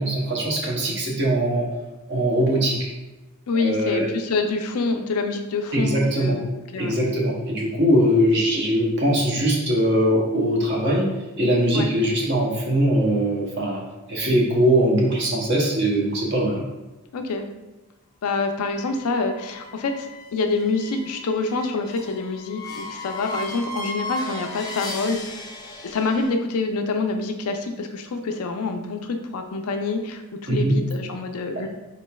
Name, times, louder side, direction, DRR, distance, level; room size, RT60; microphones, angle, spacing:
voice 1, 0.0-1.7 2.1-2.9 3.6-4.1 5.7-6.4 6.8-11.1 11.4-13.8 14.1-16.6 30.5-30.8, right 1 dB, 50° right, -2 dB, 0.8 m, -21 dB
voice 2, 3.5-7.0 11.7-11.9 17.1-17.4 18.2-20.1 20.3-25.5 25.8-31.7, left 3 dB, 90° left, 6 dB, 0.4 m, -26 dB
sound 1, 18.6-26.3, left 1 dB, 15° left, 0.3 m, -36 dB
3.9 x 3.1 x 2.2 m, 1.1 s
head